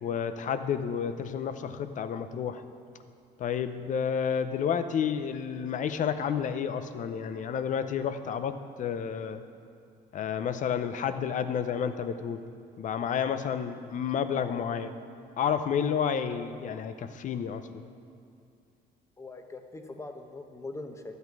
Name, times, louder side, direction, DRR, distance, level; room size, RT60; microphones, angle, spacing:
voice 1, 0.0-2.6 3.4-8.5 8.8-9.4 10.1-12.4 12.8-14.9 15.4-17.9, left 7 dB, 50° left, 11 dB, 0.6 m, -30 dB
voice 2, 19.2-21.2, left 2 dB, 15° left, 5 dB, 0.9 m, -42 dB
12.5 x 8.2 x 4.7 m, 2.5 s
cardioid pair, 110°, 17 cm